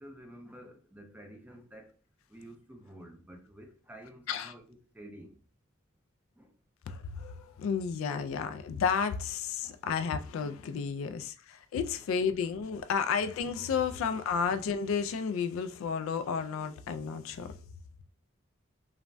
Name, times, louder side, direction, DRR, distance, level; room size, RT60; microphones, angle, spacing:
voice 1, 0.0-1.9 2.3-5.4 6.4-6.5 8.3-8.4 9.6-9.8 11.0-11.2 13.0-13.1 13.9-14.0, right 1 dB, 5° right, 0.4 m, -51 dB
voice 2, 6.9-17.6, left 6 dB, 75° left, 0.3 m, -32 dB
3.2 x 2.1 x 2.5 m
head